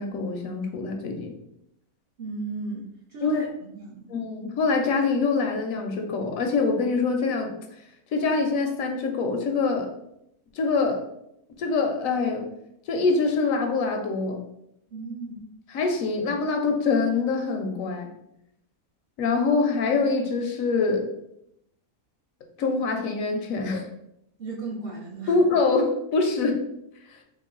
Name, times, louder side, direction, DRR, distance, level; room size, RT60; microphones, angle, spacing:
voice 1, 0.0-1.3 3.2-3.5 4.1-7.5 8.1-9.9 10.5-11.0 11.6-12.4 12.9-14.4 15.7-18.1 19.2-21.0 22.6-23.8 25.3-26.6 27.1-27.2, left 4 dB, 75° left, 4 dB, 0.9 m, -24 dB
voice 2, 2.2-4.1 14.9-15.4 24.4-25.3, right 3 dB, 55° right, -3 dB, 0.7 m, -35 dB
3.7 x 2.1 x 3.7 m, 0.78 s
omnidirectional pair, 1.5 m